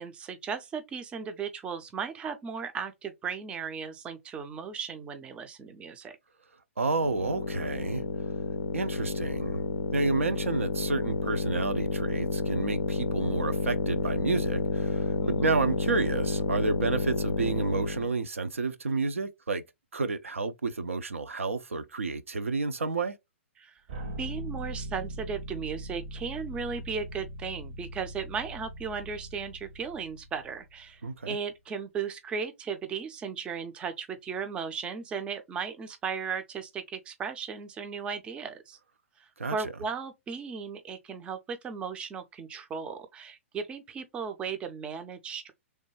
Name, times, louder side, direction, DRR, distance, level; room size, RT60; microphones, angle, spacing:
voice 1, 0.0-6.2 15.2-15.5 23.6-23.8 24.1-38.8 39.2-45.5, right 6 dB, 15° right, 0.4 m, -36 dB
voice 2, 6.8-8.0 8.7-9.6 9.9-19.6 19.9-23.1 31.0-31.4 39.4-39.7, right 3 dB, 75° right, 0.4 m, -30 dB
sound 1, 6.9-18.1, left 3 dB, 70° left, 0.4 m, -30 dB
sound 2, 23.9-30.8, right 1 dB, 55° right, 0.9 m, -40 dB
3.2 x 2.1 x 3.1 m
figure-of-eight pair, 115°, 7 cm